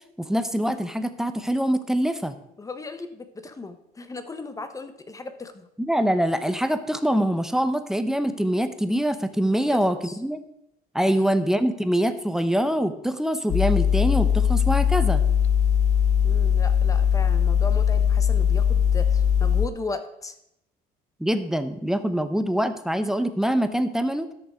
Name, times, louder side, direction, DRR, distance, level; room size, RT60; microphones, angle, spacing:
voice 1, 0.0-2.3 5.8-10.4 10.9-15.2 21.2-24.3, equal, 5° right, 9 dB, 0.7 m, -24 dB
voice 2, 2.6-5.7 9.7-10.2 11.1-11.2 16.2-20.4, left 3 dB, 20° left, 9 dB, 1.1 m, -36 dB
sound 1, 13.5-19.7, left 8 dB, 45° left, 0.4 m, -20 dB
12.5 x 6.6 x 4.9 m, 0.80 s
cardioid pair, 110°, 17 cm